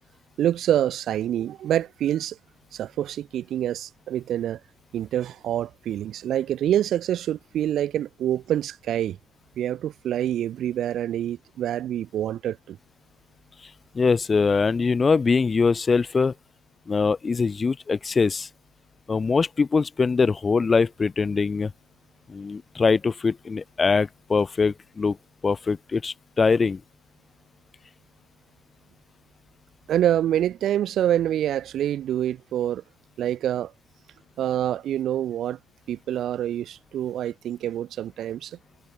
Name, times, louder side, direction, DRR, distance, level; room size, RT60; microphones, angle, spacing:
voice 1, 0.4-2.4 2.7-4.6 4.9-9.2 9.6-12.8 29.9-32.8 33.2-33.7 34.4-35.6 35.9-38.6, right 11 dB, 50° right, 5.8 m, -26 dB
voice 2, 13.9-16.3 16.9-18.5 19.1-21.7 22.3-25.2 25.4-26.8, left 4 dB, 30° left, 0.8 m, -22 dB
hypercardioid pair, 60°, 0 cm